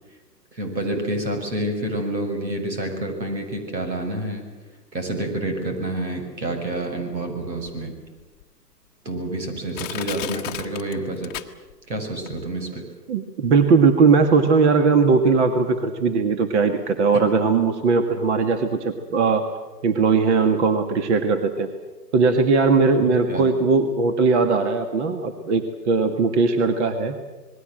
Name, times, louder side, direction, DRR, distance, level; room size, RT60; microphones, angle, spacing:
voice 1, 0.5-4.5 4.9-7.9 9.0-11.3 11.9-12.8 23.3-23.5, right 1 dB, 85° right, 6 dB, 6.7 m, -28 dB
Crushing, 7.7-7.8 8.4-8.5 9.2-9.3 9.7-11.9 12.3-12.4, left 14 dB, 25° left, 1.1 m, -34 dB
voice 2, 13.1-19.4 19.8-21.7 22.1-27.2, right 4 dB, 40° right, 8 dB, 1.9 m, -19 dB
27.5 x 21.0 x 7.8 m, 1.2 s
hypercardioid pair, 140°, 50 cm